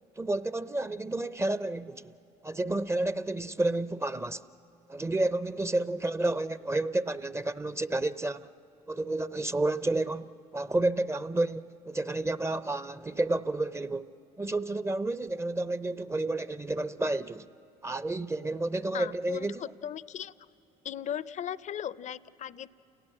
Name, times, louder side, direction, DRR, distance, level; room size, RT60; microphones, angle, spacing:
voice 1, 0.2-2.1 2.4-4.4 4.9-8.5 8.9-14.1 14.4-17.5 17.8-19.6, right 2 dB, 15° right, 0.5 m, -30 dB
voice 2, 18.9-20.3 20.8-22.7, left 9 dB, 45° left, 0.5 m, -37 dB
29.5 x 18.0 x 7.5 m
hypercardioid pair, 65°, 17 cm